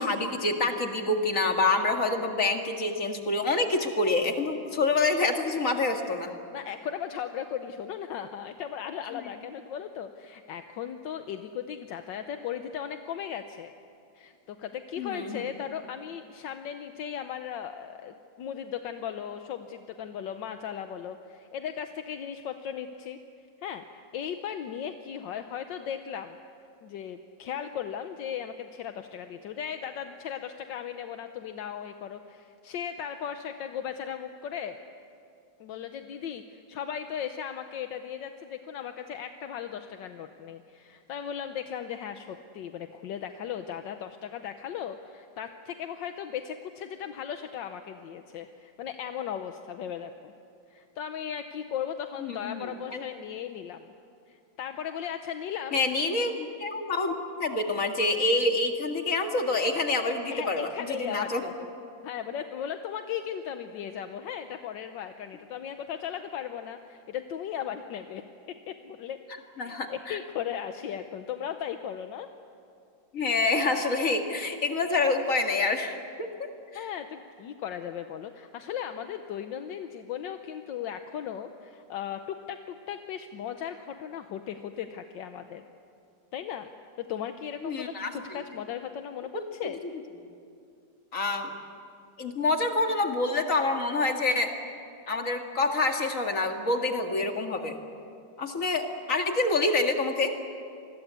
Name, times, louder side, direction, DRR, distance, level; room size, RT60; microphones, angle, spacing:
voice 1, 0.0-6.3 15.0-15.4 52.2-53.0 55.7-61.4 69.6-70.2 73.1-76.5 76.7-76.8 87.6-88.4 89.3-89.7 91.1-91.5 92.2-94.5 95.1-97.8 98.4-100.3, left 3 dB, 45° left, 4 dB, 2.2 m, -27 dB
voice 2, 6.5-13.7 14.1-23.2 23.6-23.8 24.1-26.4 26.8-34.8 35.6-50.3 50.7-53.9 54.3-55.8 60.0-61.7 62.0-69.2 69.6-72.3 76.7-85.6 86.3-86.7 87.1-89.8, left 8 dB, 80° left, 7 dB, 1.5 m, -37 dB
27.0 x 20.5 x 8.2 m, 2.5 s
omnidirectional pair, 2.0 m